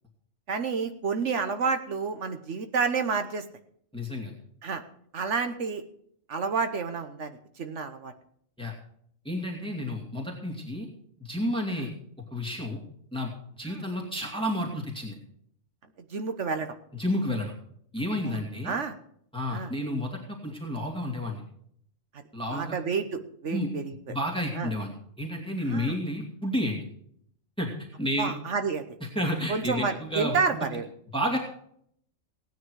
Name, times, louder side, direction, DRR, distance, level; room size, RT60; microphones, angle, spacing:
voice 1, 0.5-3.4 4.6-4.8 5.1-5.8 6.3-8.1 11.8-11.9 13.6-13.9 16.1-16.7 18.3-18.4 18.6-18.9 19.5-19.7 22.5-24.1 24.5-24.7 25.6-26.0 28.2-28.9 29.5-30.8, right 5 dB, 75° right, 8 dB, 1.4 m, -30 dB
voice 2, 3.9-4.3 8.6-8.7 9.2-10.9 11.2-11.9 12.3-12.8 13.1-13.3 13.6-15.2 17.0-17.5 17.9-18.7 19.3-21.4 22.3-22.7 23.5-23.7 24.1-26.8 27.6-28.3 29.0-30.7 31.1-31.4, equal, 5° left, -2 dB, 2.6 m, -31 dB
17.5 x 9.5 x 4.8 m, 0.67 s
omnidirectional pair, 1.3 m